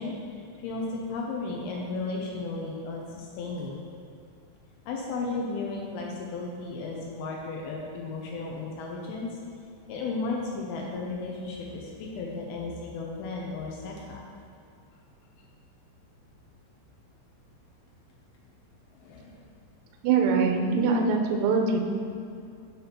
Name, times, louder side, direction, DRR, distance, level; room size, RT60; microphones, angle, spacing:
voice 1, 0.0-3.8 4.9-9.3 9.9-14.2 18.9-19.5, left 3 dB, 85° left, -1 dB, 2.2 m, -34 dB
voice 2, 20.0-21.8, right 4 dB, 80° right, 4 dB, 2.5 m, -23 dB
7.0 x 5.7 x 5.8 m, 2.4 s
omnidirectional pair, 5.4 m